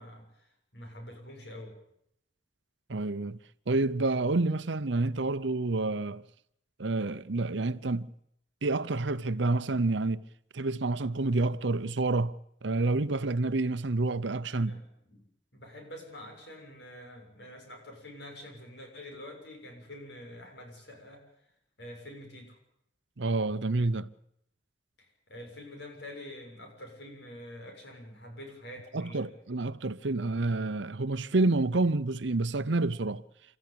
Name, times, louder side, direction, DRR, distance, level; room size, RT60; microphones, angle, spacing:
voice 1, 0.0-1.7 14.5-15.2 15.5-21.3 21.8-22.6 25.0-29.3, left 1 dB, 70° left, 7.2 m, -46 dB
voice 2, 2.9-3.4 3.7-6.2 6.8-8.1 8.6-10.2 10.5-12.3 12.6-14.8 23.2-24.1 28.9-33.2, right 2 dB, 80° right, 0.8 m, -28 dB
29.5 x 14.0 x 8.7 m
head